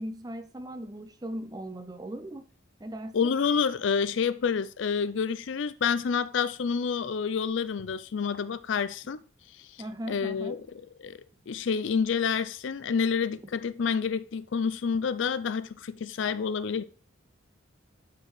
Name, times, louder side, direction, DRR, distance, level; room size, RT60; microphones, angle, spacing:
voice 1, 0.0-2.5 2.8-3.2 9.8-10.6, right 1 dB, 20° right, 0.6 m, -38 dB
voice 2, 3.1-9.2 9.6-9.7 10.1-10.7 11.0-11.2 11.5-16.8, left 6 dB, 70° left, 0.4 m, -28 dB
11.5 x 4.6 x 3.2 m
head